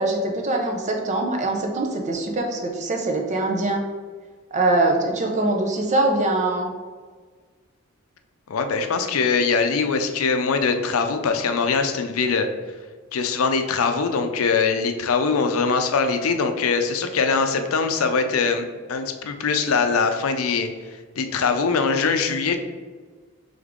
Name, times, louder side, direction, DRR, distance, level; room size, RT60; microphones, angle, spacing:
voice 1, 0.0-3.8 4.5-6.7, right 2 dB, 35° right, 2 dB, 0.6 m, -23 dB
voice 2, 8.5-12.5 13.1-20.7 21.2-22.6, left 5 dB, 85° left, 7 dB, 0.5 m, -22 dB
3.6 x 3.4 x 3.6 m, 1.5 s
head